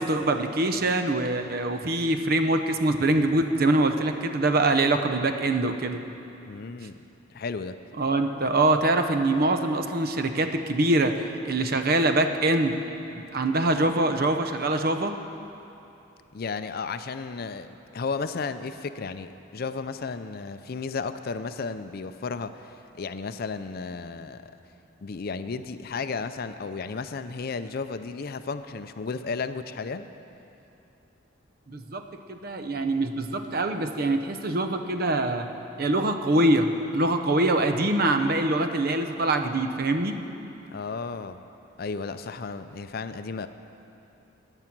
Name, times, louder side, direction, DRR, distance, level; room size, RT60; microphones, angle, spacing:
voice 1, 0.0-6.0 8.0-12.8 13.1-15.1 31.7-32.0 32.3-35.5 35.8-40.1, right 2 dB, 50° right, 7 dB, 0.7 m, -24 dB
voice 2, 6.5-6.9 7.3-7.8 16.3-24.5 25.0-30.1 40.7-41.4 41.8-43.5, left 4 dB, 50° left, 11 dB, 0.5 m, -33 dB
15.0 x 9.9 x 6.0 m, 2.8 s
head